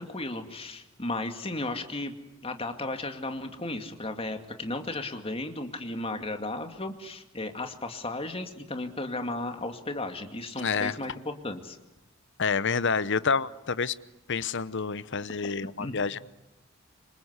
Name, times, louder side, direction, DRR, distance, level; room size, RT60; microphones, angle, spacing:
voice 1, 0.0-2.1 2.4-11.8 15.8-15.9, left 2 dB, 25° left, 2.4 m, -34 dB
voice 2, 10.6-11.0 12.4-13.9 14.3-16.2, left 5 dB, 55° left, 0.9 m, -28 dB
27.0 x 25.5 x 8.2 m
head